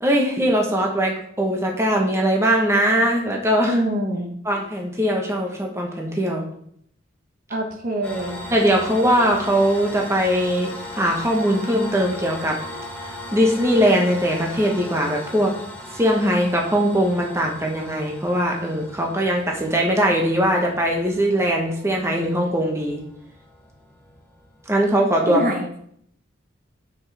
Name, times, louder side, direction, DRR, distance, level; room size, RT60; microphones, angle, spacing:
voice 1, 0.0-3.8 4.4-6.4 8.5-12.6 13.0-15.5 15.9-23.0 24.7-25.4, equal, 15° right, 0 dB, 1.0 m, -21 dB
voice 2, 3.6-4.3 7.5-8.4 25.3-25.7, right 1 dB, 45° right, 2 dB, 0.9 m, -24 dB
sound 1, 8.0-25.1, left 1 dB, 5° left, 1.3 m, -38 dB
7.5 x 6.0 x 3.3 m, 0.67 s
head